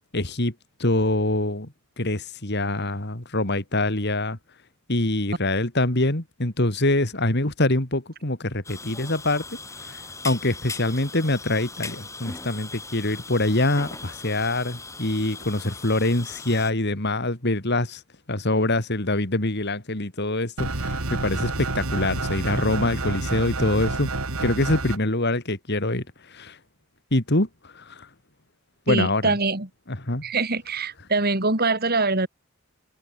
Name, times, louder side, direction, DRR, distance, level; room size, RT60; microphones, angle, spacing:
voice 1, 0.1-0.5 0.8-4.4 4.9-18.0 18.3-24.1 24.4-26.6 27.1-28.1 28.9-29.3 29.9-30.3, left 2 dB, 50° left, 3.0 m, -25 dB
sound 1, 8.6-16.7, left 3 dB, 15° left, 6.8 m, -39 dB
sound 2, 20.6-25.0, right 2 dB, 75° right, 2.6 m, -28 dB
voice 2, 28.9-29.7 30.2-32.3, right 3 dB, 45° right, 3.1 m, -23 dB
head